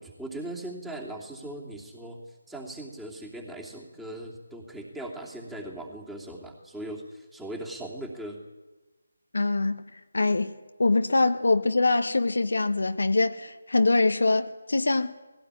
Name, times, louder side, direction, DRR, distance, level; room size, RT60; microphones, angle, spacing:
voice 1, 0.0-2.2 2.5-8.4, right 1 dB, 5° right, -1 dB, 2.9 m, -39 dB
voice 2, 9.3-9.8 10.1-10.5 10.8-15.1, left 3 dB, 70° left, 9 dB, 1.4 m, -23 dB
20.0 x 17.0 x 9.7 m, 1.2 s
figure-of-eight pair, 155°, 0 cm